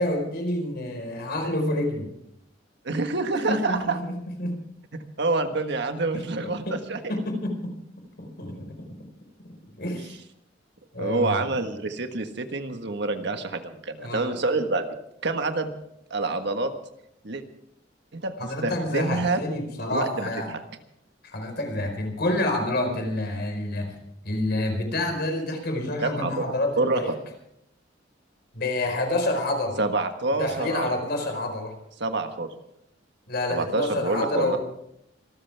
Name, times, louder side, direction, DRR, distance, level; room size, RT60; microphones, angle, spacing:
voice 1, 0.0-2.1 3.3-4.6 6.1-6.8 7.1-7.8 8.2-9.0 9.6-10.2 10.9-11.5 14.0-14.4 18.4-20.5 21.2-23.9 24.2-27.1 28.5-29.8 30.3-31.7 33.3-34.6, left 1 dB, 60° left, 4 dB, 4.7 m, -28 dB
voice 2, 2.8-4.0 4.9-7.1 11.0-14.9 15.2-15.7 16.1-16.7 17.2-17.4 18.1-18.3 18.6-19.4 19.9-20.3 26.0-26.4 26.8-27.2 29.8-30.9 32.0-32.5 33.5-34.6, right 3 dB, 65° right, 7 dB, 1.5 m, -27 dB
26.0 x 14.0 x 3.5 m, 0.77 s
head